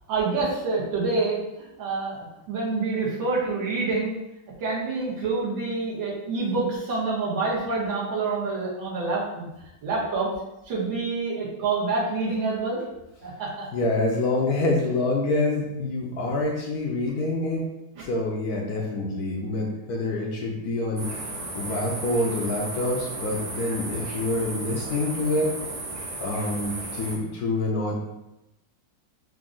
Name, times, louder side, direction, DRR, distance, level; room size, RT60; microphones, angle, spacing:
voice 1, 0.1-4.2 4.6-9.5 9.8-10.3 10.7-12.8 13.2-13.7, right 3 dB, 90° right, -7 dB, 2.1 m, -27 dB
voice 2, 13.7-17.7 18.0-21.1 21.5-25.6 26.2-28.0, left 2 dB, 65° left, -1 dB, 1.0 m, -26 dB
sound 1, 21.0-27.2, right 2 dB, 55° right, 1.6 m, -34 dB
4.8 x 2.6 x 3.7 m, 0.92 s
omnidirectional pair, 2.0 m